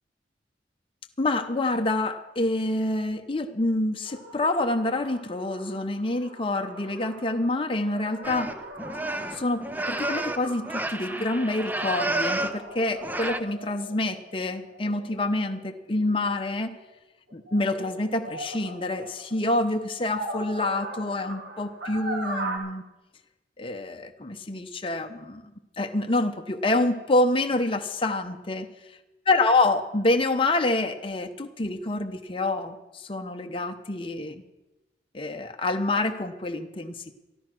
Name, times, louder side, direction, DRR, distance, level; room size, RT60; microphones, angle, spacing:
voice 1, 1.2-8.6 9.3-16.7 17.3-22.8 23.6-28.7 29.3-34.4 35.1-37.1, left 2 dB, 30° left, 6 dB, 0.8 m, -27 dB
sound 1, 4.1-16.8 17.3-22.6, right 1 dB, 90° right, 2.6 m, -40 dB
sound 2, 8.2-12.6 13.0-13.4, right 1 dB, 10° right, 0.6 m, -30 dB
13.5 x 12.5 x 6.0 m, 1.0 s
head